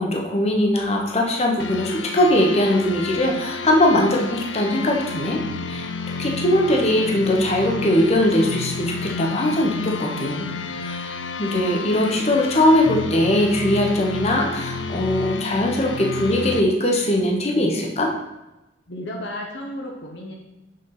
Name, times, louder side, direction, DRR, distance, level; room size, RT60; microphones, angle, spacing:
voice 1, 0.0-5.4 5.7-5.9 6.2-10.5 10.8-11.1 11.4-18.1, left 1 dB, 35° left, 1 dB, 1.0 m, -20 dB
sound 1, 1.6-16.6, left 3 dB, 80° left, 0.5 m, -31 dB
voice 2, 18.9-20.3, left 1 dB, 65° left, 0 dB, 1.0 m, -33 dB
6.5 x 4.1 x 5.8 m, 0.99 s
head